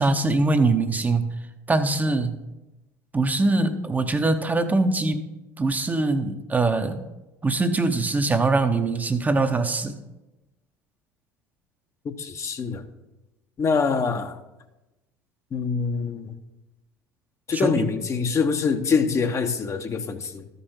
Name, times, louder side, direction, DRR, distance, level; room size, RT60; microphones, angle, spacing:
voice 1, 0.0-1.3 1.7-2.4 3.1-5.3 5.6-7.0 7.4-10.0 17.5-17.8, right 3 dB, 20° right, 0.8 m, -22 dB
voice 2, 12.0-12.8 13.6-14.4 15.5-16.3 17.5-20.5, left 5 dB, 35° left, 0.9 m, -25 dB
13.0 x 5.4 x 4.4 m
hypercardioid pair, 65°, 8 cm